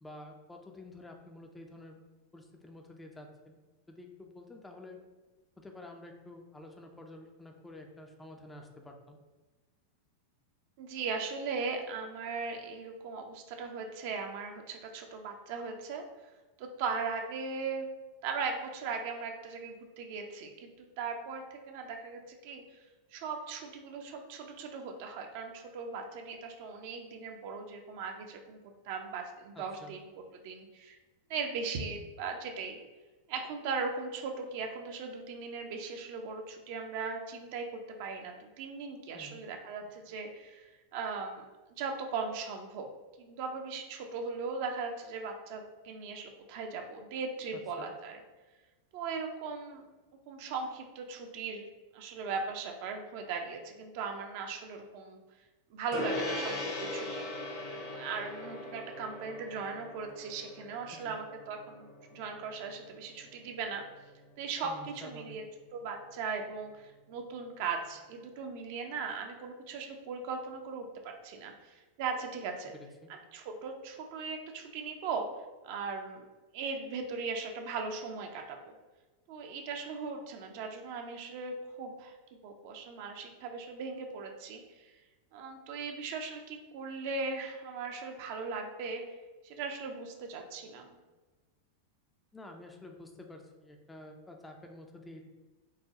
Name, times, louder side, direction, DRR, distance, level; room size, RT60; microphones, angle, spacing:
voice 1, 0.0-2.0 2.3-3.6 3.9-5.0 5.6-9.2 29.5-29.9 39.1-39.4 47.8-47.9 60.9-61.2 64.6-65.4 72.7-73.1 92.3-95.2, left 1 dB, 10° left, 2 dB, 0.4 m, -49 dB
voice 2, 10.8-16.0 16.6-17.9 18.2-20.7 21.0-22.8 23.1-28.6 28.8-30.0 30.4-31.0 31.3-32.8 33.3-41.4 41.8-42.9 43.2-48.2 48.9-49.8 50.3-51.6 51.9-55.2 55.7-57.3 57.8-63.8 64.4-65.4 65.7-72.7 73.1-75.2 75.6-76.3 76.5-78.7 79.3-82.1 82.4-84.9 85.3-89.0 89.4-91.0, right 4 dB, 50° right, 4 dB, 0.5 m, -38 dB
Gong, 55.9-65.6, left 2 dB, 45° left, 0.8 m, -41 dB
4.6 x 2.2 x 2.8 m, 1.3 s
figure-of-eight pair, 90°, 0 cm